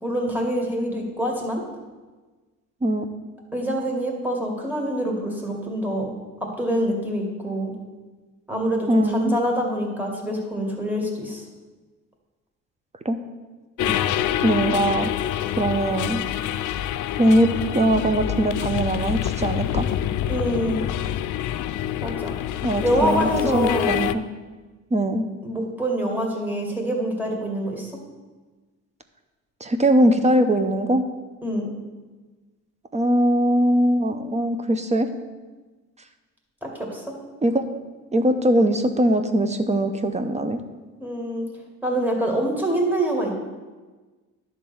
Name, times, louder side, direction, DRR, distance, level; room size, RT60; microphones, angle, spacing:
voice 1, 0.0-1.6 3.5-6.1 6.4-7.7 8.5-11.4 13.8-14.0 20.3-20.9 22.0-22.3 22.8-23.9 25.4-28.0 31.4-31.7 36.6-37.0 41.0-41.5 41.8-43.4, right 1 dB, 5° right, -1 dB, 2.2 m, -25 dB
voice 2, 8.9-9.4 13.0-13.2 14.4-15.1 15.6-16.2 17.2-19.9 22.6-24.2 24.9-25.3 29.6-31.0 32.9-35.1 37.4-37.6 38.1-40.6, right 1 dB, 20° right, 8 dB, 0.8 m, -21 dB
sound 1, 13.8-24.1, left 11 dB, 80° left, 0.5 m, -26 dB
10.5 x 3.8 x 7.1 m, 1.3 s
cardioid pair, 90°, 30 cm